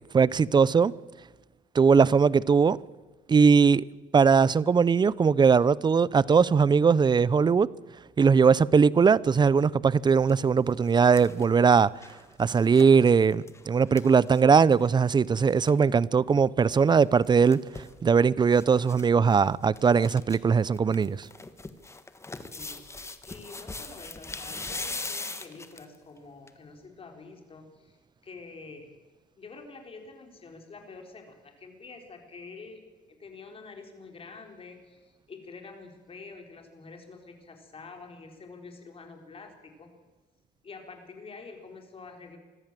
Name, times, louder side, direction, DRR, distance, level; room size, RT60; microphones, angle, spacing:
voice 1, 0.1-0.9 1.7-2.8 3.3-3.8 4.1-7.7 8.2-11.9 12.4-21.3, right 5 dB, 25° right, 0.5 m, -20 dB
sound 1, 10.0-10.3 10.7-14.9 15.2-15.3 15.5-15.8 17.0-18.0 18.5-19.1 19.3-19.4 19.8-20.4 20.8-26.0 26.5-26.6, left 3 dB, 15° left, 1.5 m, -40 dB
voice 2, 22.5-23.0 23.2-28.0 28.2-28.9 29.4-39.9 40.6-42.4, left 4 dB, 35° left, 4.2 m, -47 dB
24.5 x 14.0 x 7.6 m
cardioid pair, 110°, 17 cm